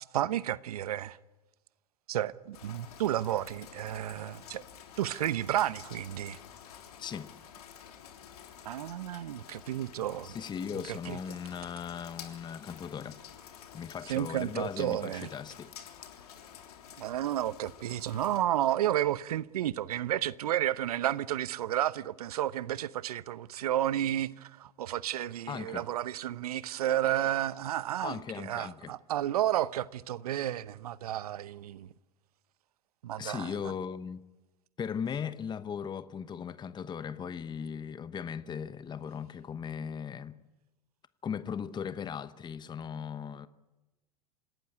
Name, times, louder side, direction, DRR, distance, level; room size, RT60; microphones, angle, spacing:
voice 1, 0.1-1.2 2.1-4.6 5.0-6.4 8.6-10.3 10.7-11.2 14.0-15.3 17.0-31.9 33.0-33.7, right 12 dB, 70° right, 0.9 m, -32 dB
Rain, 2.5-18.4, left 9 dB, 75° left, 3.3 m, -50 dB
voice 2, 7.0-7.3 10.2-13.2 13.7-15.7 25.5-25.9 28.0-28.9 33.2-34.2 34.8-40.4 41.2-43.5, left 7 dB, 20° left, 1.0 m, -38 dB
26.5 x 17.5 x 9.7 m
hypercardioid pair, 90°, 20 cm